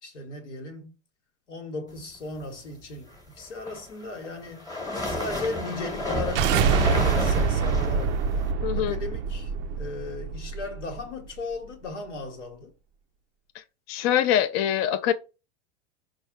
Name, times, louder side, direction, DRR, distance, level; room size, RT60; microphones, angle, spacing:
voice 1, 0.0-0.9 1.5-4.7 5.0-8.2 8.7-12.7, left 3 dB, 90° left, 1.2 m, -36 dB
sound 1, 3.4-8.5, left 1 dB, 10° left, 1.1 m, -31 dB
sound 2, 5.9-11.0, right 6 dB, 35° right, 0.4 m, -26 dB
voice 2, 8.6-8.9 13.9-15.1, left 10 dB, 45° left, 0.5 m, -23 dB
4.1 x 2.2 x 3.5 m
hypercardioid pair, 95°, 35 cm